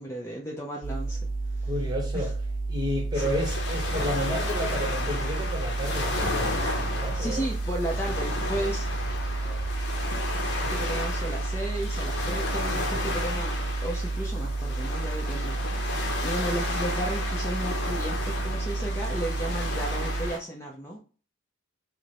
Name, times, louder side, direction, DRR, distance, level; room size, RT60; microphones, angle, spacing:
voice 1, 0.0-1.7 2.1-2.3 3.1-3.4 7.1-8.9 10.6-21.0, right 1 dB, 15° left, 0.5 m, -34 dB
sound 1, 0.8-20.3, right 3 dB, 40° right, 0.3 m, -31 dB
voice 2, 1.7-2.3 2.7-7.5 9.4-9.7 10.6-10.8 16.1-16.2, equal, 20° right, 0.9 m, -32 dB
sound 2, 3.1-20.4, left 2 dB, 55° left, 0.8 m, -33 dB
4.9 x 2.0 x 2.9 m
head